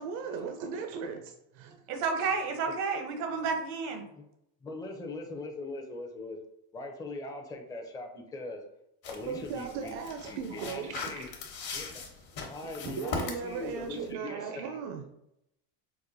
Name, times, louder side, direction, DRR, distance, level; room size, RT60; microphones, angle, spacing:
voice 1, 0.0-1.8 9.3-11.3 12.8-15.0, right 6 dB, 65° right, 4 dB, 0.6 m, -37 dB
voice 2, 1.9-4.0, right 5 dB, 80° right, 4 dB, 0.9 m, -31 dB
voice 3, 4.6-6.4 6.7-8.6 9.1-10.0 10.2-11.3 11.7-12.1 12.4-14.8, left 2 dB, 10° left, 2 dB, 0.5 m, -41 dB
sound 1, 9.0-14.1, left 4 dB, 50° left, 1.1 m, -40 dB
4.7 x 2.2 x 2.6 m, 0.80 s
supercardioid pair, 90°, 45 cm